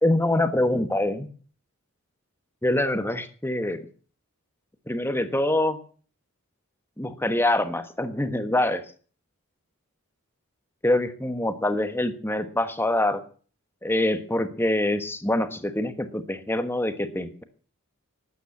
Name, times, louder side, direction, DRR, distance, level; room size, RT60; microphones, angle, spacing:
voice 1, 0.0-1.3 2.6-3.9 4.9-5.8 7.0-8.8 10.8-13.2 13.8-17.4, left 1 dB, 10° left, 9 dB, 1.3 m, -25 dB
13.0 x 9.3 x 8.4 m, 0.42 s
head